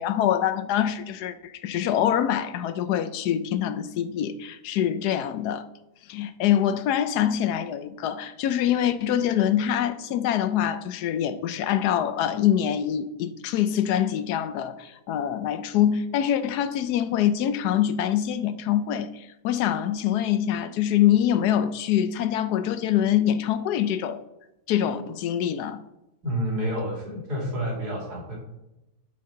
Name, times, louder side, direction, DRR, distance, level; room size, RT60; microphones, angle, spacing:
voice 1, 0.0-5.7 6.1-24.2 24.7-25.8, left 10 dB, 85° left, 1.2 m, -24 dB
voice 2, 26.2-28.4, equal, 80° right, 3.0 m, -29 dB
11.5 x 5.7 x 3.8 m
omnidirectional pair, 1.7 m